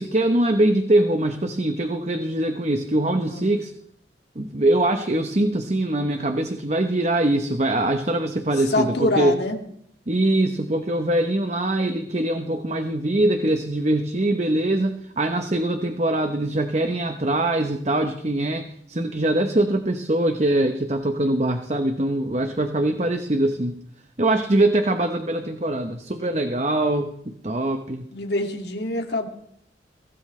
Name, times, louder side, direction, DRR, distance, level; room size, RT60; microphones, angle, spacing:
voice 1, 0.0-3.7 4.4-9.4 10.1-23.8 24.2-28.1, right 1 dB, 35° right, 7 dB, 0.9 m, -23 dB
voice 2, 8.5-9.6 28.1-29.3, left 2 dB, 65° left, 3 dB, 2.3 m, -25 dB
23.0 x 17.0 x 3.3 m, 0.70 s
head